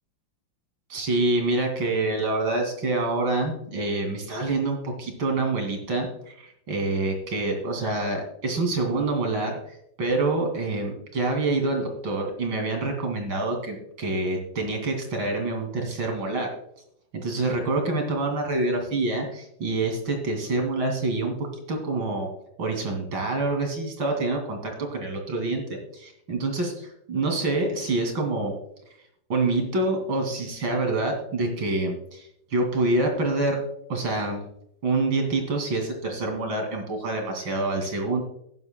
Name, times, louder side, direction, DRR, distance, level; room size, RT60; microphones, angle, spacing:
voice 1, 0.9-16.5 17.1-22.3 22.6-28.5 29.3-33.6 33.9-34.4 34.8-38.2, right 2 dB, 90° right, 3 dB, 3.2 m, -26 dB
16.0 x 11.0 x 2.2 m, 0.74 s
omnidirectional pair, 2.1 m